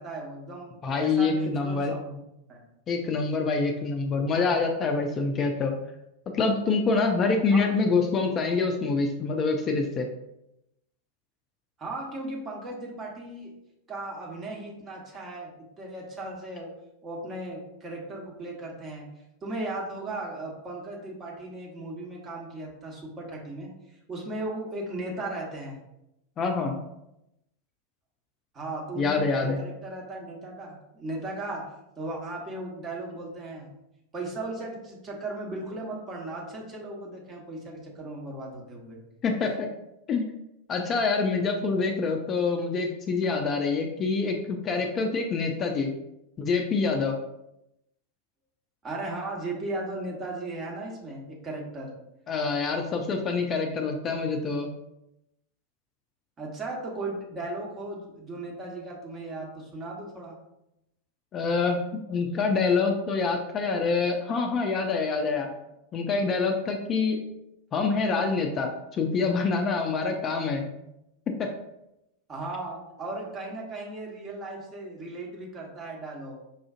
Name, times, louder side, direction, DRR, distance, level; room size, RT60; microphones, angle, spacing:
voice 1, 0.0-2.2 2.5-2.6 7.5-7.7 11.8-13.5 13.9-16.7 17.0-19.1 19.4-23.7 24.1-25.8 28.5-31.6 32.0-33.7 34.1-39.0 48.8-51.9 56.4-60.4 72.3-76.4, right 2 dB, 25° right, -1 dB, 1.0 m, -36 dB
voice 2, 0.8-1.9 2.9-5.7 6.3-10.1 26.4-26.7 29.0-29.6 39.2-39.7 40.1-40.3 40.7-45.9 46.4-47.1 52.3-54.7 61.3-61.8 62.1-65.5 65.9-67.2 67.7-70.7 71.4-71.5, left 4 dB, 25° left, 4 dB, 0.4 m, -26 dB
5.5 x 2.4 x 2.4 m, 0.85 s
figure-of-eight pair, 90°, 0 cm